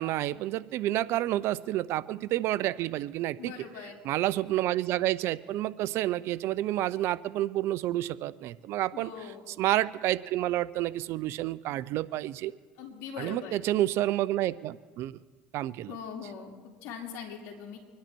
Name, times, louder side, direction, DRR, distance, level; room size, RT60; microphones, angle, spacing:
voice 1, 0.0-3.5 4.0-9.1 9.5-12.5 13.2-15.2 15.5-15.9, right 14 dB, 65° right, 18 dB, 0.5 m, -29 dB
voice 2, 3.4-4.0 8.9-9.4 12.8-13.6 15.9-17.8, left 6 dB, 70° left, 0 dB, 2.5 m, -41 dB
25.0 x 10.5 x 4.5 m, 1.4 s
supercardioid pair, 85°, 5 cm